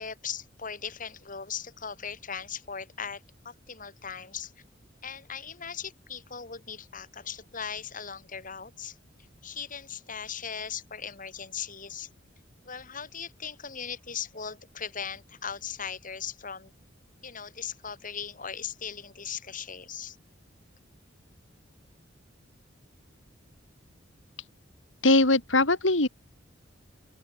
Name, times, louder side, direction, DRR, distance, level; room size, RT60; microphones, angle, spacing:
voice 1, 0.0-4.5 5.0-9.0 9.4-12.1 12.6-16.7 17.2-20.2, left 7 dB, 45° left, 4.2 m, -38 dB
voice 2, 25.0-26.1, left 2 dB, 75° left, 3.5 m, -21 dB
open air
head